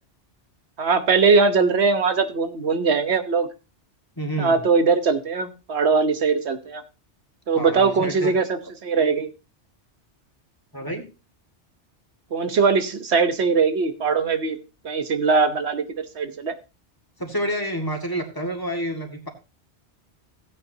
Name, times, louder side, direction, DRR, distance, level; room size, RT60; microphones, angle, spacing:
voice 1, 0.8-3.5 4.4-6.8 7.5-9.3 12.3-16.6, right 4 dB, 70° right, 8 dB, 1.2 m, -21 dB
voice 2, 4.2-4.6 7.5-8.3 10.7-11.1 17.2-19.3, right 1 dB, 20° left, 3 dB, 1.9 m, -28 dB
16.0 x 9.1 x 2.8 m, 0.29 s
omnidirectional pair, 1.1 m